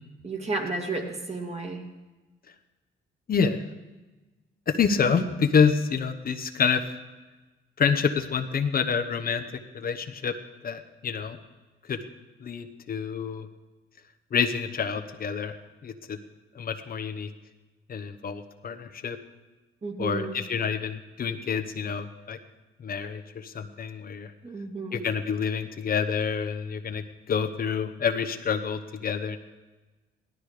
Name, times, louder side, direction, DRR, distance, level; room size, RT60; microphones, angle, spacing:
voice 1, 0.2-1.8 5.1-5.3 19.8-20.4 24.4-25.0, right 3 dB, 30° right, 2 dB, 2.6 m, -32 dB
voice 2, 3.3-3.6 4.7-6.8 7.8-9.4 9.7-10.3 10.6-11.4 11.9-12.0 12.4-13.5 14.3-15.6 15.8-16.2 16.5-17.3 17.9-19.2 20.0-22.4 22.8-24.3 24.9-29.4, left 6 dB, 50° left, 7 dB, 1.0 m, -27 dB
17.0 x 12.5 x 5.0 m, 1.2 s
cardioid pair, 90°, 20 cm